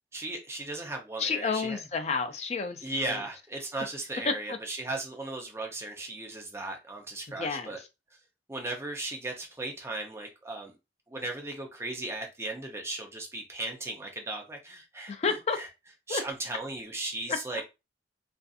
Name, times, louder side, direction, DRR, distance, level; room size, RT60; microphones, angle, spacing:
voice 1, 0.1-1.8 2.8-7.8 8.5-10.7 11.1-15.7 16.1-17.6, right 2 dB, 15° right, 0.5 m, -36 dB
voice 2, 1.2-2.8 3.0-3.2 7.4-7.7 15.1-15.6 16.1-16.2, left 5 dB, 35° left, 0.4 m, -30 dB
2.5 x 2.5 x 2.3 m
head